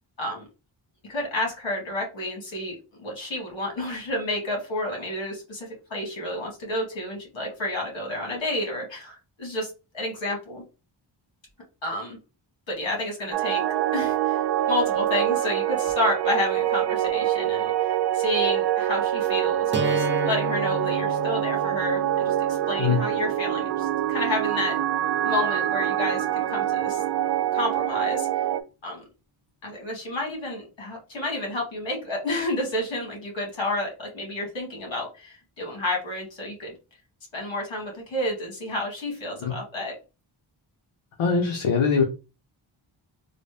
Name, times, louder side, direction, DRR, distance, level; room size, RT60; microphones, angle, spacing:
voice 1, 1.1-2.8 3.0-10.6 11.8-12.2 12.7-13.6 13.9-14.4 14.7-24.8 25.2-27.0 27.5-28.3 28.8-29.0 29.6-36.7 37.3-40.0, left 1 dB, 65° left, 0 dB, 2.2 m, -30 dB
sound 1, 13.3-28.6, right 12 dB, 55° right, 0.5 m, -25 dB
sound 2, 19.7-25.7, left 1 dB, 25° right, 0.8 m, -35 dB
voice 2, 41.2-42.0, left 5 dB, 80° left, 2 dB, 0.9 m, -22 dB
3.9 x 2.2 x 3.4 m, 0.31 s
cardioid pair, 85°, 49 cm